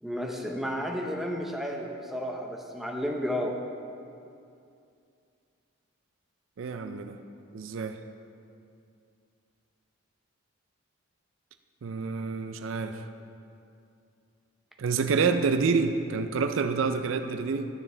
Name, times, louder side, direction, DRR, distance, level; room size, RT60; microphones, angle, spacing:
voice 1, 0.0-3.6, equal, ahead, 0 dB, 0.7 m, -32 dB
voice 2, 6.6-7.2 7.5-8.0 11.8-13.0 14.8-17.7, right 5 dB, 70° right, 8 dB, 0.4 m, -27 dB
12.0 x 7.0 x 3.3 m, 2.5 s
head